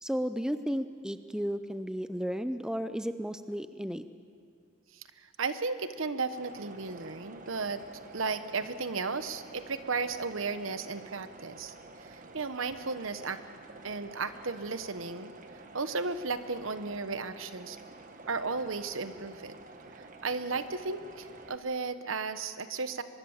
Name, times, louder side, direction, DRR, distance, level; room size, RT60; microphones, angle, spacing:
voice 1, 0.0-4.0, equal, 5° right, 10 dB, 0.5 m, -33 dB
voice 2, 4.9-7.8 8.1-11.7 12.0-13.4 13.8-15.3 15.7-17.8 18.3-19.5 19.9-23.0, right 4 dB, 70° right, 11 dB, 1.1 m, -34 dB
sound 1, 6.3-21.6, right 2 dB, 40° right, 1.4 m, -50 dB
23.5 x 22.0 x 7.3 m, 2.3 s
head